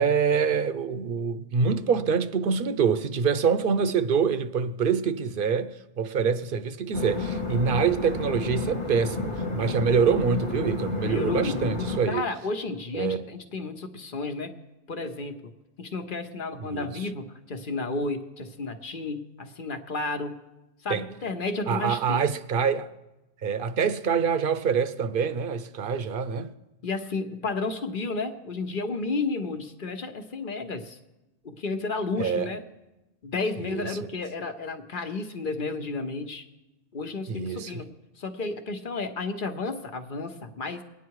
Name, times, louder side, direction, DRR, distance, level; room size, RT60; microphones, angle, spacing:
voice 1, 0.0-12.3 12.9-13.2 16.6-17.1 20.9-21.1 21.7-22.9 23.4-26.5 32.2-32.5 33.6-34.1 37.3-37.8, right 6 dB, 60° right, 0.8 m, -25 dB
sound 1, 6.9-12.0, left 3 dB, 30° left, 1.0 m, -31 dB
voice 2, 11.0-14.5 14.9-15.5 15.8-20.4 20.8-22.3 26.8-31.0 31.4-32.6 33.2-36.4 36.9-37.9 38.2-40.8, left 3 dB, 55° left, 1.1 m, -32 dB
21.5 x 9.3 x 4.7 m
omnidirectional pair, 1.0 m